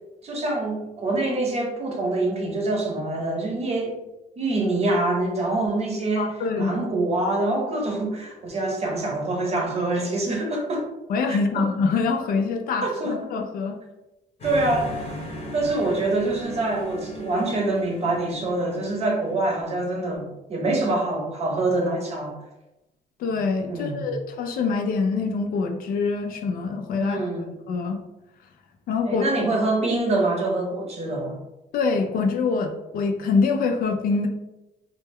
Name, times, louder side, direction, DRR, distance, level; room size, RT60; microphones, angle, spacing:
voice 1, 0.2-4.0 4.4-10.9 11.3-11.7 12.8-13.2 14.4-15.2 15.5-22.4 23.7-24.1 27.0-27.5 29.0-31.4, right 2 dB, 40° right, 0 dB, 0.7 m, -25 dB
voice 2, 6.2-6.7 11.1-13.8 23.2-27.3 27.7-28.0 28.9-29.2 31.7-34.3, left 4 dB, 60° left, 3 dB, 0.4 m, -25 dB
sound 1, 14.4-20.0, left 1 dB, 35° left, 0.8 m, -38 dB
2.2 x 2.1 x 3.4 m, 0.96 s
cardioid pair, 110°, 17 cm